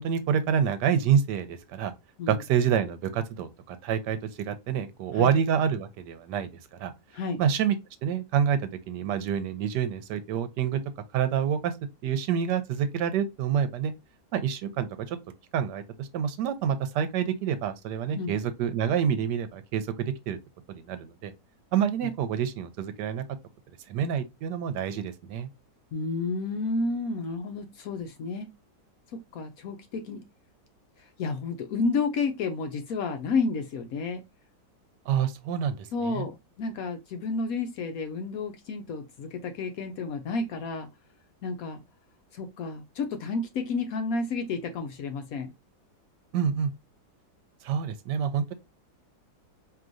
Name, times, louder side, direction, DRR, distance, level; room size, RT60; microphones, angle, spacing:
voice 1, 0.0-1.9 2.3-6.5 6.8-6.9 7.4-7.8 8.0-10.8 11.1-11.7 12.0-13.9 14.3-15.2 15.5-20.4 20.7-21.3 21.7-23.2 23.9-25.5 35.1-36.2 46.3-46.7 47.6-48.5, right 8 dB, 75° right, 1.2 m, -27 dB
voice 2, 25.9-28.5 29.1-30.3 31.2-34.2 35.9-40.9 41.4-41.8 42.3-45.5, left 4 dB, 70° left, 0.9 m, -31 dB
4.7 x 3.0 x 2.5 m
omnidirectional pair, 1.9 m